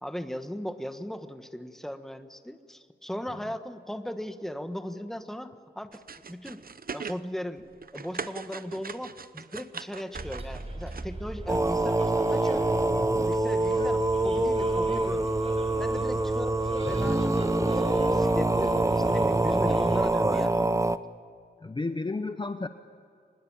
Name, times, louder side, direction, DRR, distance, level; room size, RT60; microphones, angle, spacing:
voice 1, 0.0-6.0 6.3-7.6 7.9-12.7 13.3-15.3 15.8-17.4 17.6-20.8, equal, ahead, 9 dB, 1.3 m, -38 dB
sound 1, 5.9-7.2 7.6-11.0, right 5 dB, 55° right, 0.8 m, -40 dB
Bus, 10.1-20.0, right 1 dB, 35° right, 5.5 m, -38 dB
sound 2, 11.5-21.0, right 2 dB, 15° right, 0.7 m, -25 dB
voice 2, 21.6-22.7, left 3 dB, 25° left, 9 dB, 0.8 m, -32 dB
25.0 x 20.5 x 8.7 m, 2.3 s
wide cardioid pair, 125°, 18 cm